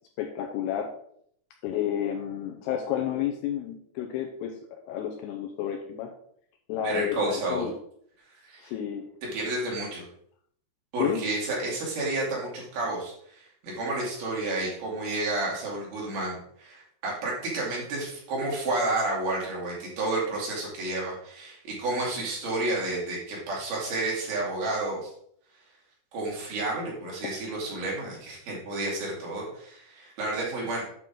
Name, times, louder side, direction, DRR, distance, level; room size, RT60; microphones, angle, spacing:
voice 1, 0.2-0.9 1.6-6.1 6.7-7.7 8.6-9.1 11.0-11.2, left 10 dB, 80° left, 2 dB, 2.5 m, -31 dB
voice 2, 6.8-7.7 8.4-8.7 9.3-10.0 10.9-25.1 26.1-30.8, right 2 dB, 55° right, -4 dB, 4.2 m, -31 dB
9.1 x 5.9 x 3.8 m, 0.65 s
omnidirectional pair, 5.3 m